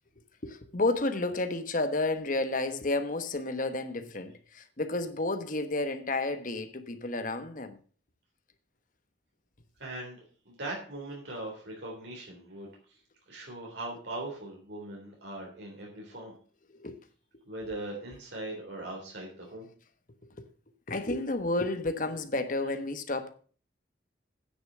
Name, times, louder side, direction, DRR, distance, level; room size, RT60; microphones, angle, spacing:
voice 1, 0.4-7.8 16.7-17.0 20.2-20.5 20.9-23.3, left 2 dB, 45° left, 1.1 m, -31 dB
voice 2, 9.8-10.2 10.4-13.0 13.3-16.3 17.5-19.7, right 2 dB, 75° right, 3.4 m, -40 dB
9.7 x 6.9 x 6.8 m
head